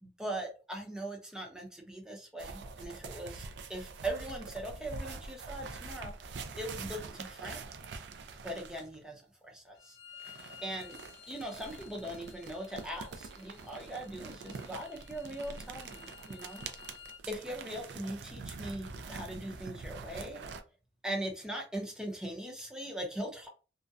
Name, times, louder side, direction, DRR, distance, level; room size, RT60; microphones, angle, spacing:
voice 1, 0.0-6.1 6.5-7.6 8.4-10.0 10.6-11.0 11.3-16.6 17.3-20.4 21.0-23.5, right 1 dB, 5° right, 1 dB, 0.6 m, -40 dB
sound 1, 2.4-9.0 10.2-20.6, right 4 dB, 70° right, 0.4 m, -45 dB
Bowed string instrument, 9.7-17.2, left 9 dB, 75° left, 0.4 m, -54 dB
2.6 x 2.1 x 2.3 m, 0.34 s
head